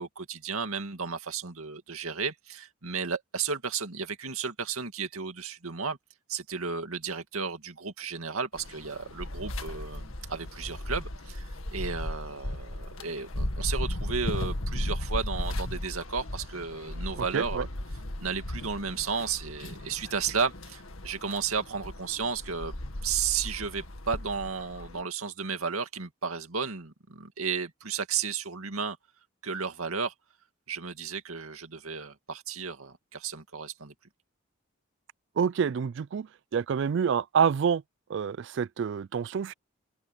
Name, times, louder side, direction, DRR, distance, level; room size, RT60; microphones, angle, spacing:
voice 1, 0.0-6.0 6.3-17.7 18.2-22.7 23.0-29.0 29.4-30.1 30.7-33.9, right 5 dB, 90° right, 2.3 m, -33 dB
sound 1, 8.5-25.0, left 1 dB, 75° left, 2.0 m, -36 dB
voice 2, 17.2-17.7 35.4-37.8 38.1-39.5, right 7 dB, 55° right, 0.3 m, -27 dB
open air
head